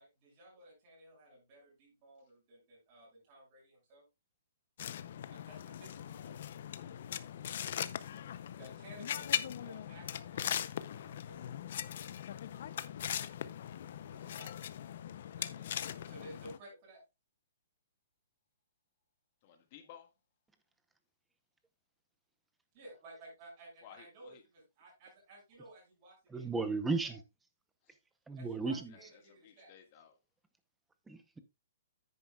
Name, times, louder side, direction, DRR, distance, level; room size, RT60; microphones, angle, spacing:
voice 1, 0.0-4.0 5.3-6.4 8.6-11.5 14.1-14.6 15.3-17.0 22.7-26.6 27.0-27.2 28.4-29.7, right 1 dB, 25° right, 6.3 m, -56 dB
sound 1, 4.8-16.6, left 10 dB, 45° left, 0.6 m, -40 dB
voice 2, 19.4-20.1 23.8-24.4 28.9-30.1, left 9 dB, 30° left, 1.7 m, -56 dB
voice 3, 26.3-27.2 28.3-28.9 31.1-31.4, right 3 dB, 5° right, 0.7 m, -35 dB
9.7 x 9.6 x 2.3 m
hypercardioid pair, 170°, 0 cm